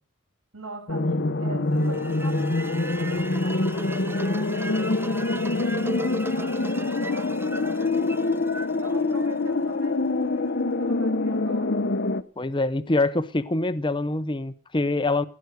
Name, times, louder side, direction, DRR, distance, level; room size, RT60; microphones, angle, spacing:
voice 1, 0.5-6.0 6.3-8.2 8.8-11.8, right 2 dB, 90° right, 5.8 m, -43 dB
sound 1, 0.9-12.2, left 2 dB, 50° left, 0.9 m, -25 dB
sound 2, 1.8-9.9, right 1 dB, 10° right, 0.6 m, -38 dB
voice 2, 12.4-15.2, left 2 dB, 20° left, 0.7 m, -25 dB
16.5 x 9.8 x 6.5 m
head